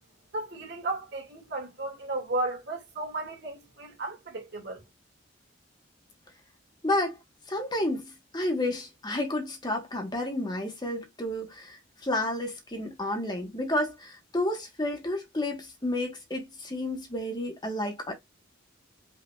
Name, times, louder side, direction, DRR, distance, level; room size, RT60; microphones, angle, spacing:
voice 1, 0.3-4.8, right 2 dB, 60° right, 2.2 m, -34 dB
voice 2, 6.8-7.2 7.5-18.1, left 1 dB, 20° left, 1.2 m, -31 dB
5.3 x 3.9 x 2.3 m
head